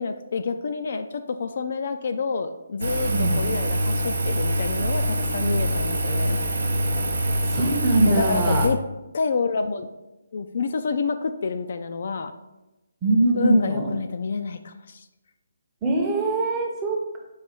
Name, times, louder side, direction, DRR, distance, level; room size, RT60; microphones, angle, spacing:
voice 1, 0.0-6.4 8.1-8.8 9.1-9.9 10.3-12.3 13.3-15.1, left 4 dB, 55° left, 8 dB, 0.3 m, -28 dB
Engine, 2.8-8.7, right 1 dB, 70° right, 0.5 m, -24 dB
voice 2, 3.1-3.4 7.5-8.7 13.0-13.9 15.8-17.2, right 2 dB, 15° right, -1 dB, 0.7 m, -22 dB
4.9 x 2.6 x 4.2 m, 1.0 s
hypercardioid pair, 155°, 0 cm